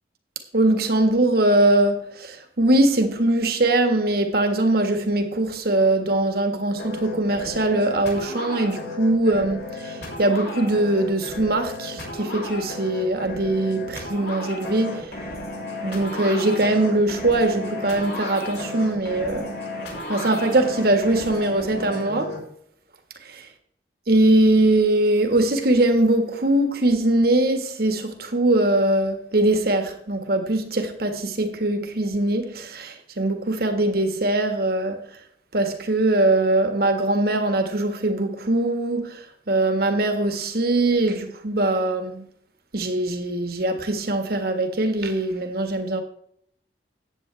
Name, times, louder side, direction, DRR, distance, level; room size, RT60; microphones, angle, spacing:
voice 1, 0.5-15.1 15.8-19.6 20.1-22.4 23.2-23.4 24.1-35.0 35.5-42.2 42.7-46.0, right 2 dB, 60° right, 1.7 m, -21 dB
sound 1, 6.8-22.4, left 2 dB, 65° left, 4.7 m, -34 dB
14.5 x 9.4 x 3.5 m
head